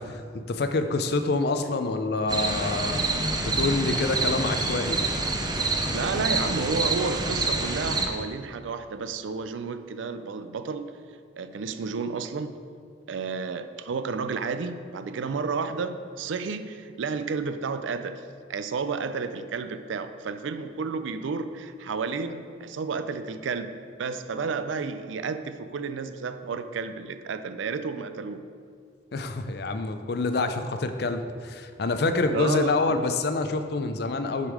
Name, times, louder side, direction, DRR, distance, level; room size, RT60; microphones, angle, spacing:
voice 1, 0.0-3.0 3.4-5.0 29.1-34.5, left 3 dB, 55° left, 8 dB, 0.5 m, -27 dB
sound 1, 2.3-8.1, right 2 dB, 20° right, 0.5 m, -27 dB
voice 2, 5.9-10.9 11.4-12.6 13.1-18.2 18.5-28.5 32.3-32.7, right 4 dB, 80° right, 10 dB, 0.4 m, -31 dB
6.6 x 5.3 x 4.8 m, 2.2 s
head